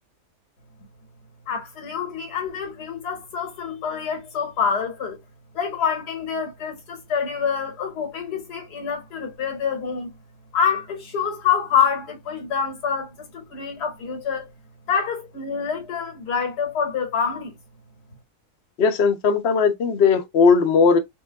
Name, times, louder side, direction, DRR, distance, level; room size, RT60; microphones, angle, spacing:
voice 1, 1.5-5.2 5.5-10.1 10.5-14.5 14.9-17.5, left 7 dB, 75° left, 1.9 m, -26 dB
voice 2, 18.8-21.0, left 5 dB, 55° left, 0.7 m, -18 dB
4.4 x 2.6 x 2.3 m
omnidirectional pair, 1.7 m